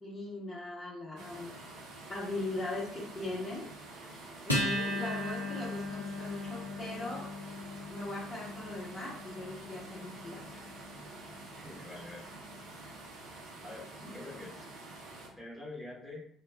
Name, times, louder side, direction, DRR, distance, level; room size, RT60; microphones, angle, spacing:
voice 1, 0.0-1.5 2.1-3.7 4.4-7.3 7.9-10.7 14.1-14.2, left 2 dB, 25° left, -5 dB, 0.9 m, -40 dB
sound 1, 1.2-15.3, right 2 dB, 60° right, 0.6 m, -48 dB
Acoustic guitar, 4.5-11.3, left 1 dB, 85° left, 0.5 m, -37 dB
voice 2, 11.5-12.2 13.6-14.7 15.4-16.2, left 2 dB, ahead, -6 dB, 1.0 m, -46 dB
2.2 x 2.2 x 3.5 m, 0.64 s
figure-of-eight pair, 50°, 0 cm